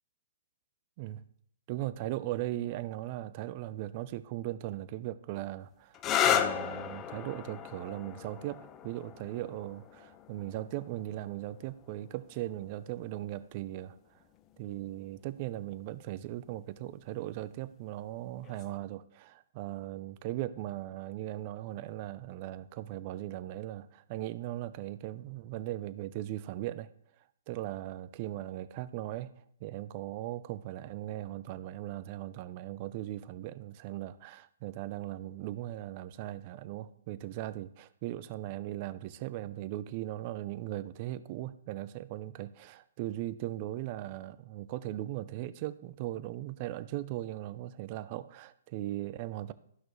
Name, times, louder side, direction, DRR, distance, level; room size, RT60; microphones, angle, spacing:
voice 1, 1.7-6.0 6.2-14.0 14.6-26.9 27.5-49.5, right 14 dB, 40° right, 15 dB, 0.5 m, -38 dB
sound 1, 5.9-13.4 14.4-14.9 18.4-18.8, left 9 dB, 25° left, 0.6 m, -35 dB
12.5 x 5.9 x 3.1 m, 0.68 s
figure-of-eight pair, 125°, 0 cm